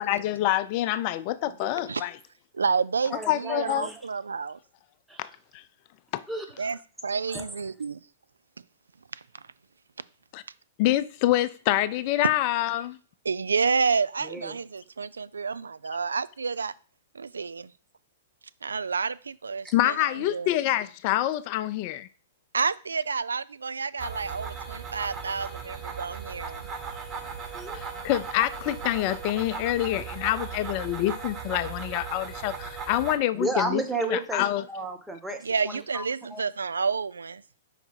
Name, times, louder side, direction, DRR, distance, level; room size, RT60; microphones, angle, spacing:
voice 1, 0.0-2.1 3.3-3.9 5.2-5.6 6.1-6.2 10.3-10.4 10.8-13.0 19.7-22.1 27.7-33.8 34.1-34.6, left 14 dB, 45° left, 0.4 m, -26 dB
voice 2, 1.4-1.9 3.1-4.0 5.1-5.3 6.3-6.8 7.3-7.5 14.2-14.6 19.6-19.7 27.5-27.8 30.0-30.1 33.3-36.0 36.3-36.4, right 2 dB, 5° right, 1.0 m, -33 dB
voice 3, 2.5-4.6 6.6-8.0 13.2-16.7 17.1-17.7 18.6-19.9 20.3-20.5 22.5-26.6 35.4-37.4, right 5 dB, 80° right, 0.3 m, -29 dB
Air Duct Beat, 24.0-33.2, right 6 dB, 30° right, 1.3 m, -37 dB
4.9 x 4.5 x 4.4 m
hypercardioid pair, 110°, 0 cm